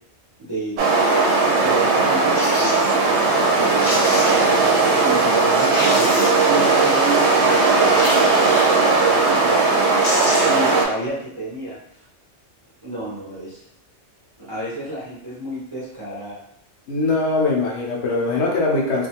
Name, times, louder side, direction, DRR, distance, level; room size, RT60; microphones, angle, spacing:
voice 1, 0.4-0.8 1.6-10.1 10.4-12.0 12.8-13.6 14.4-16.4, right 1 dB, 30° right, -8 dB, 0.6 m, -32 dB
sound 1, 0.8-10.8, right 3 dB, 70° right, 0.8 m, -17 dB
sound 2, 2.3-2.8 3.5-3.6 3.8-4.6 5.2-5.3 5.6-6.6 7.9-8.8 9.7-9.8 10.0-10.7 11.0-11.1, left 1 dB, 50° left, 0.5 m, -28 dB
voice 2, 16.9-19.1, left 3 dB, 70° left, -2 dB, 0.9 m, -21 dB
2.4 x 2.3 x 2.8 m, 0.76 s
omnidirectional pair, 1.2 m